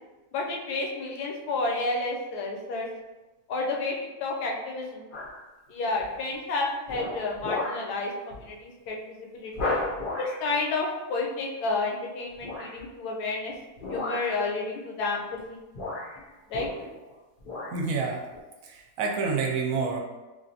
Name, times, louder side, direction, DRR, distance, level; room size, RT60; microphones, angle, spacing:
voice 1, 0.3-2.9 3.5-3.9 4.2-5.0 5.7-9.0 9.3-9.5 10.2-13.5 13.9-15.2 15.5-15.6 16.5-16.7, left 3 dB, 85° left, 0 dB, 1.2 m, -30 dB
sound 1, 5.1-5.5 6.0-6.3 6.9-7.9 8.3-8.5 8.9-9.0 9.5-10.5 12.4-12.9 13.8-14.4 15.3-15.5 15.7-17.1 17.4-17.8 18.3-18.4, left 2 dB, 55° left, 0.5 m, -34 dB
voice 2, 17.7-18.2 18.6-20.0, right 4 dB, 70° right, 1 dB, 0.9 m, -28 dB
3.3 x 2.5 x 2.7 m, 1.1 s
omnidirectional pair, 1.7 m